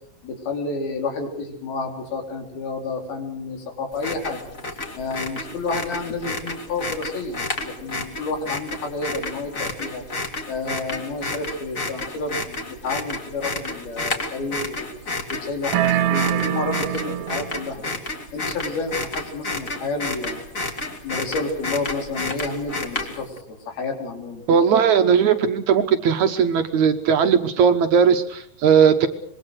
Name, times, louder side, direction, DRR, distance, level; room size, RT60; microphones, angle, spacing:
voice 1, 0.2-4.4 5.0-10.1 10.5-14.9 15.3-17.8 18.3-20.5 21.0-24.5, left 3 dB, 90° left, 4 dB, 5.6 m, -30 dB
sound 1, 3.9-23.4, left 2 dB, 25° left, 2.5 m, -31 dB
sound 2, 15.7-17.7, right 12 dB, 85° right, 2.9 m, -23 dB
voice 2, 24.5-29.1, right 7 dB, 65° right, 7 dB, 2.1 m, -18 dB
25.5 x 22.0 x 6.4 m, 0.64 s
omnidirectional pair, 4.2 m